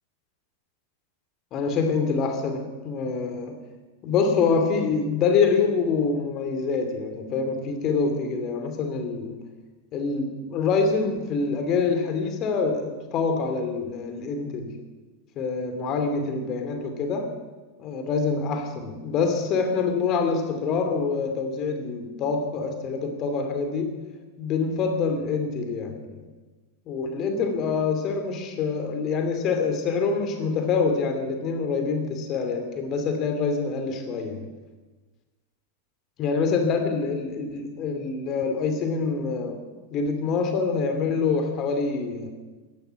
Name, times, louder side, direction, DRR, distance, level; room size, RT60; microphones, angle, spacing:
voice 1, 1.5-3.6 4.0-9.5 9.9-14.8 15.4-17.3 17.8-23.9 24.4-26.3 26.9-34.5 36.2-39.6 39.9-42.3, left 4 dB, 35° left, 6 dB, 2.7 m, -26 dB
16.5 x 13.0 x 5.9 m, 1.2 s
figure-of-eight pair, 90°, 0 cm